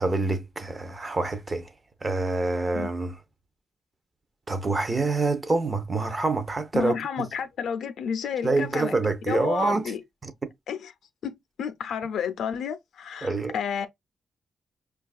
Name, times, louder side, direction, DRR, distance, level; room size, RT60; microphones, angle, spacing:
voice 1, 0.0-1.7 2.0-3.1 4.5-7.3 8.4-9.8 10.2-10.3 13.2-13.5, right 3 dB, 25° right, 0.4 m, -26 dB
voice 2, 6.7-8.9 9.3-10.0 10.7-10.9 11.2-13.9, left 7 dB, 75° left, 0.4 m, -31 dB
5.2 x 2.3 x 2.3 m
wide cardioid pair, 145°, 0 cm